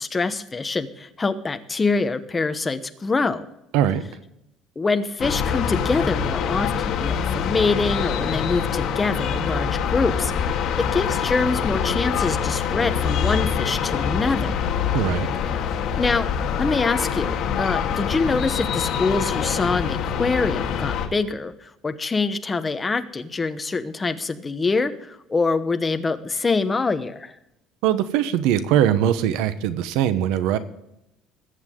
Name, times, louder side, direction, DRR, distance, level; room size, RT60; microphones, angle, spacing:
voice 1, 0.0-3.5 4.8-14.7 16.0-16.3 16.6-27.3, left 4 dB, 15° left, 9 dB, 0.9 m, -25 dB
sound 1, 5.2-21.1, left 7 dB, 50° left, 2.0 m, -25 dB
voice 2, 14.9-15.3 27.8-30.6, right 10 dB, 80° right, 12 dB, 0.9 m, -21 dB
21.0 x 8.2 x 3.7 m, 0.84 s
cardioid pair, 160°, 0 cm